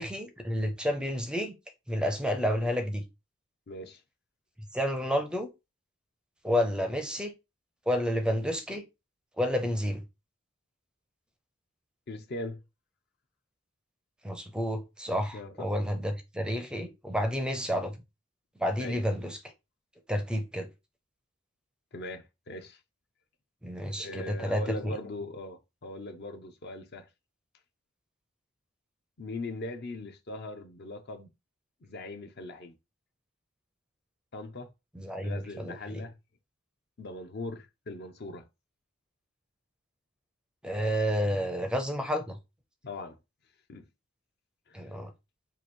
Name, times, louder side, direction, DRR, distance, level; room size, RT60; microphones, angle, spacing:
voice 1, 0.0-1.5 1.9-3.0 4.7-5.5 6.4-7.3 7.9-8.8 9.4-10.0 14.2-17.9 18.6-19.4 20.1-20.7 23.6-24.9 34.9-36.0 40.6-42.4 44.7-45.1, equal, 5° right, 0.5 m, -30 dB
voice 2, 3.7-4.0 12.1-12.6 15.3-15.7 18.8-19.0 21.9-22.8 23.8-27.1 29.2-31.3 31.8-32.7 34.3-34.7 35.2-36.1 37.0-38.5 42.8-43.2 43.7-43.8 44.7-44.9, left 2 dB, 55° left, 0.6 m, -40 dB
3.0 x 2.6 x 4.3 m
head